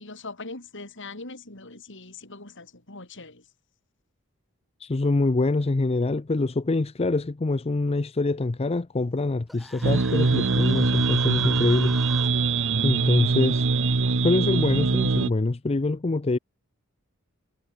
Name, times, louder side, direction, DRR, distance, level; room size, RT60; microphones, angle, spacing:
voice 1, 0.0-3.4, left 3 dB, 60° left, 5.8 m, -41 dB
voice 2, 4.8-12.0 12.8-13.7 14.2-16.4, left 2 dB, 30° left, 0.5 m, -25 dB
Human voice, 9.5-12.3, equal, ahead, 4.3 m, -42 dB
sound 1, 9.8-15.3, right 4 dB, 60° right, 0.9 m, -23 dB
head